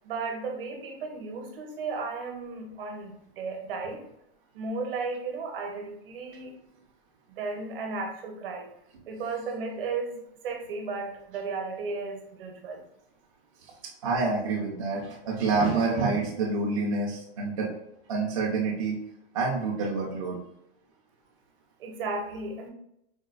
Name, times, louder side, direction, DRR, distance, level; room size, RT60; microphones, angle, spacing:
voice 1, 0.0-4.1 4.5-6.5 7.3-8.7 9.1-12.8 21.8-22.7, right 4 dB, 60° right, 2 dB, 0.8 m, -34 dB
voice 2, 14.0-17.7 18.1-19.0 19.3-20.4, right 3 dB, 35° right, -4 dB, 0.4 m, -27 dB
4.2 x 2.2 x 2.3 m, 0.79 s
supercardioid pair, 175°, 32 cm